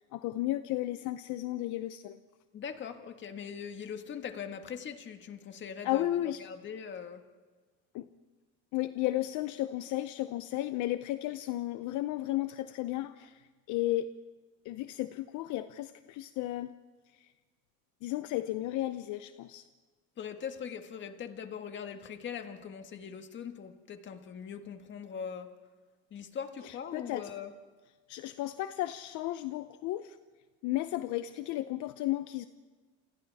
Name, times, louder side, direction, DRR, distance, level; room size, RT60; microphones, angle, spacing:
voice 1, 0.0-2.2 5.8-6.4 7.9-8.1 8.7-14.1 14.6-16.7 18.0-19.6 26.6-27.3 28.1-30.2 30.6-32.5, left 15 dB, 65° left, 11 dB, 0.7 m, -34 dB
voice 2, 2.5-7.2 20.2-25.5 26.1-27.5, left 7 dB, 35° left, 7 dB, 1.7 m, -41 dB
28.5 x 27.5 x 3.5 m, 1.4 s
cardioid pair, 145°, 32 cm